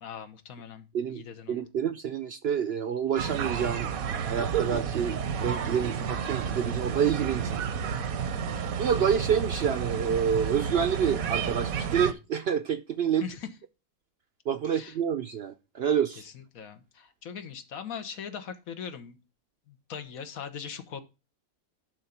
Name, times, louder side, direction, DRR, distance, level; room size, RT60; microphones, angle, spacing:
voice 1, 0.0-1.7 13.2-13.5 14.6-15.0 16.2-19.2 19.7-21.0, left 7 dB, 75° left, 1.5 m, -40 dB
voice 2, 1.5-8.0 8.8-13.3 14.5-16.2, right 8 dB, 60° right, 0.7 m, -28 dB
sound 1, 3.2-12.1, right 7 dB, 80° right, 1.2 m, -31 dB
11.0 x 3.9 x 5.7 m
omnidirectional pair, 1.5 m